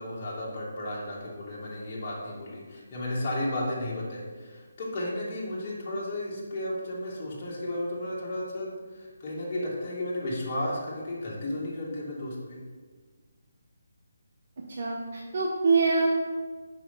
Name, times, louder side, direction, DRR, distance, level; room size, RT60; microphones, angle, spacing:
voice 1, 0.0-12.6, left 1 dB, 35° left, -5 dB, 1.8 m, -33 dB
voice 2, 14.8-16.1, right 4 dB, 50° right, -1 dB, 0.8 m, -24 dB
5.1 x 4.8 x 5.4 m, 1.5 s
figure-of-eight pair, 160°, 0 cm